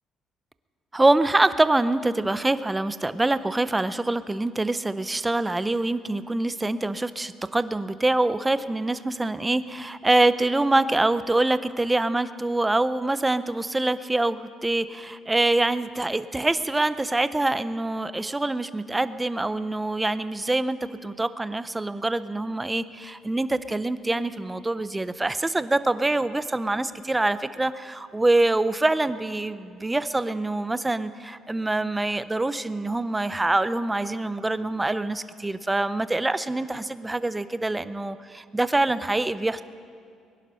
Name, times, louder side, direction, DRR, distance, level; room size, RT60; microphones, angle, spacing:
voice 1, 0.9-39.6, right 2 dB, 10° right, 14 dB, 0.5 m, -25 dB
22.0 x 11.5 x 5.6 m, 2.4 s
cardioid pair, 115°, 0 cm